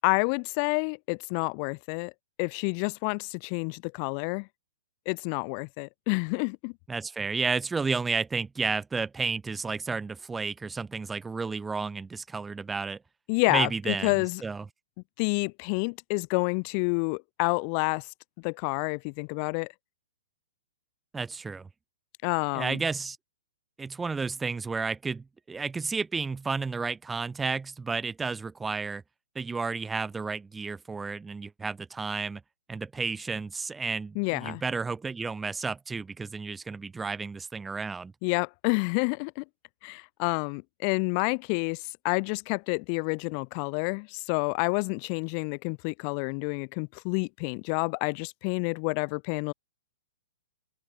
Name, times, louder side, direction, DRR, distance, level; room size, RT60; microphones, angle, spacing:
voice 1, 0.0-2.1 2.4-4.5 5.1-6.7 13.3-14.4 15.2-18.1 18.4-19.7 22.2-22.8 34.2-34.6 38.2-39.4 39.8-49.5, left 40 dB or more, 40° left, 0.9 m, -29 dB
voice 2, 6.9-13.0 13.5-14.6 21.1-21.7 22.5-23.2 23.8-29.0 29.3-32.4 32.7-38.1, right 4 dB, 10° right, 6.3 m, -32 dB
figure-of-eight pair, 110°, 0 cm